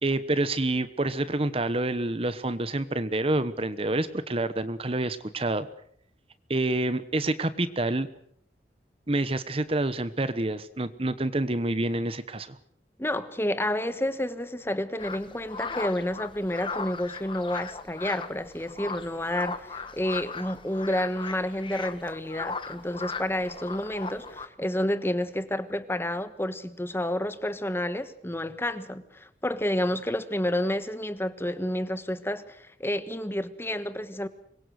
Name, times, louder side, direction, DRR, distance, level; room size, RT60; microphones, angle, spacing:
voice 1, 0.0-5.7 6.5-8.1 9.1-12.6, right 2 dB, 35° right, 13 dB, 1.1 m, -27 dB
voice 2, 13.0-34.3, left 1 dB, 15° left, 12 dB, 1.4 m, -30 dB
sound 1, 15.0-24.5, left 4 dB, 30° left, 1.4 m, -37 dB
25.5 x 22.5 x 6.5 m, 0.68 s
head